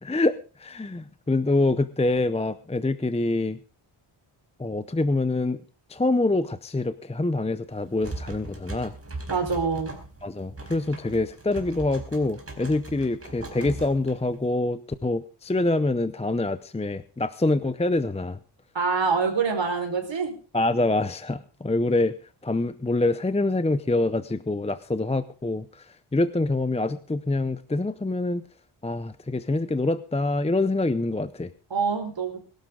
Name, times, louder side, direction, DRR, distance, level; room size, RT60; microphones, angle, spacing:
voice 1, 0.0-3.6 4.6-5.6 5.9-8.9 10.2-18.4 20.5-22.1 22.4-25.9 26.1-28.4 28.8-31.5, left 2 dB, 15° left, 12 dB, 0.6 m, -25 dB
sound 1, 7.7-14.5, right 2 dB, 30° right, 4.3 m, -39 dB
voice 2, 9.3-10.0 18.7-20.3 31.7-32.4, right 5 dB, 60° right, 3 dB, 4.9 m, -25 dB
22.0 x 12.0 x 3.8 m, 0.36 s
wide cardioid pair, 150°, 49 cm